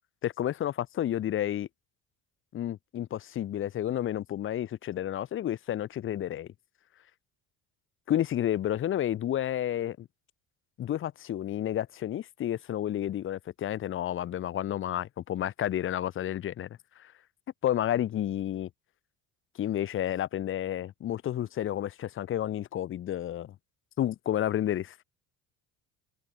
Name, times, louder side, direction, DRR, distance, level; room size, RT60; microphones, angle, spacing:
voice 1, 0.2-1.7 2.5-6.5 8.1-10.1 10.8-16.7 17.0-17.1 17.6-18.7 19.6-23.5 24.0-24.9, left 11 dB, 35° left, 0.5 m, -31 dB
supercardioid pair, 85°, 36 cm